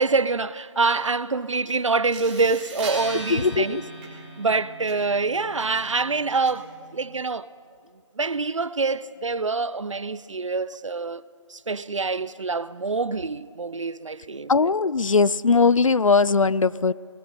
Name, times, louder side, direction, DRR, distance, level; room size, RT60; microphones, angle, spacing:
voice 1, 0.0-3.8 4.4-7.5 8.2-11.2 11.5-14.5, right 4 dB, 70° right, 0.8 m, -25 dB
sound 1, 1.7-1.8 2.1-7.1, right 2 dB, 15° right, 2.9 m, -39 dB
voice 2, 3.3-3.8 14.5-16.9, left 4 dB, 80° left, 0.6 m, -19 dB
20.5 x 17.0 x 8.8 m
figure-of-eight pair, 165°, 17 cm